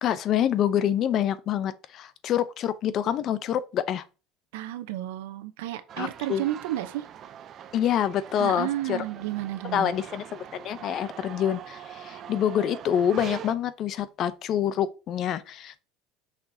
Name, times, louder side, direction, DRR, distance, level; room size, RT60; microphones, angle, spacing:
voice 1, 0.0-4.0 6.0-6.4 7.7-9.0 9.7-15.8, left 10 dB, 50° left, 0.7 m, -26 dB
voice 2, 4.5-7.1 8.4-9.9, right 14 dB, 90° right, 0.8 m, -32 dB
sound 1, 5.9-13.6, right 9 dB, 45° right, 0.6 m, -43 dB
5.9 x 5.8 x 2.8 m
supercardioid pair, 120°, 0 cm